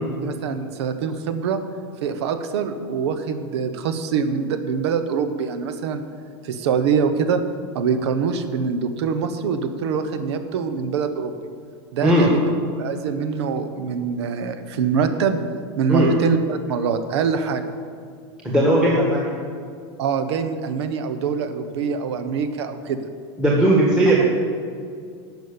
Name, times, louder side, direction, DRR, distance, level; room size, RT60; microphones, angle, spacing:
voice 1, 0.2-1.6 2.0-6.0 6.4-7.4 7.7-11.3 11.9-12.4 12.8-15.4 15.8-17.6 20.0-23.1, right 6 dB, 75° right, 9 dB, 1.2 m, -24 dB
voice 2, 18.4-19.3 23.4-24.2, right 1 dB, 5° right, -5 dB, 1.5 m, -17 dB
12.0 x 6.3 x 8.6 m, 2.2 s
supercardioid pair, 170°, 14 cm